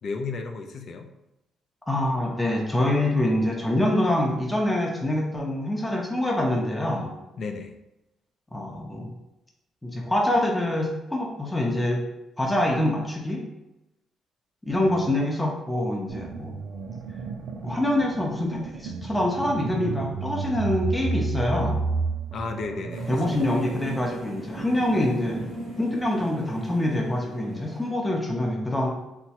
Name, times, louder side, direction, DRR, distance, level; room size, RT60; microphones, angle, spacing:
voice 1, 0.0-1.1 7.4-7.7 14.7-15.1 22.3-23.6, left 4 dB, 60° left, 5 dB, 0.4 m, -34 dB
voice 2, 1.9-7.2 8.5-9.1 9.8-12.0 12.4-13.4 14.6-16.5 17.6-21.8 23.1-25.5 25.8-28.9, left 1 dB, 15° left, -1 dB, 0.6 m, -25 dB
sound 1, 16.1-26.6, right 4 dB, 75° right, 0.3 m, -32 dB
Mechanical Whirring, 22.9-27.9, left 2 dB, 90° left, 1.2 m, -43 dB
3.0 x 2.2 x 2.8 m, 0.92 s
supercardioid pair, 65°, 0 cm